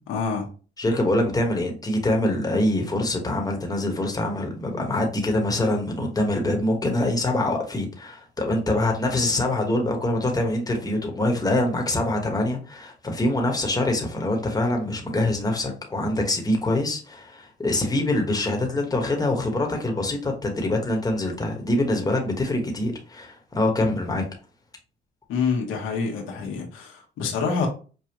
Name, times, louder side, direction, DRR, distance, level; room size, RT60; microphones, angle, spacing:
voice 1, 0.1-0.5 25.3-27.7, left 5 dB, 90° left, 1.1 m, -27 dB
voice 2, 0.8-24.2, left 1 dB, 20° left, 1.2 m, -24 dB
5.2 x 2.3 x 2.9 m
cardioid pair, 90°, 20 cm